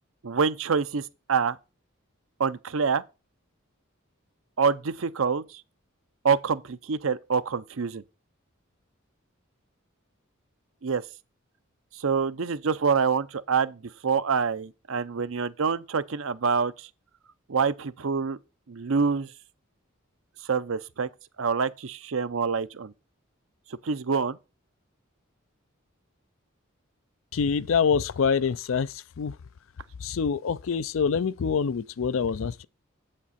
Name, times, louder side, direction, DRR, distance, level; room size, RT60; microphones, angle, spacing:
voice 1, 0.2-1.6 2.4-3.0 4.6-5.6 6.2-8.0 10.8-11.0 12.0-16.9 17.5-18.4 18.7-19.3 20.5-21.1 21.4-22.9 23.8-24.4, right 5 dB, 70° right, 0.6 m, -26 dB
voice 2, 27.3-28.9 29.2-29.3 30.0-32.7, left 6 dB, 70° left, 0.4 m, -25 dB
8.3 x 7.5 x 4.2 m
head